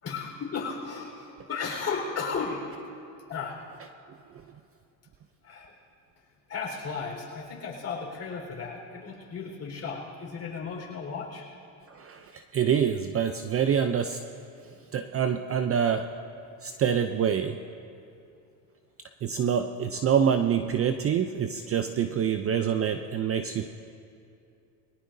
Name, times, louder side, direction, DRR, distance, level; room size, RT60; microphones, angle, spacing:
voice 1, 0.0-2.7 3.3-3.6 5.4-5.7 6.5-11.5, left 5 dB, 30° left, -2 dB, 4.5 m, -35 dB
voice 2, 11.9-14.2 14.9-16.1 16.6-17.6 19.2-23.7, right 8 dB, 30° right, 8 dB, 0.6 m, -26 dB
23.0 x 17.5 x 2.7 m, 2.5 s
supercardioid pair, 105°, 48 cm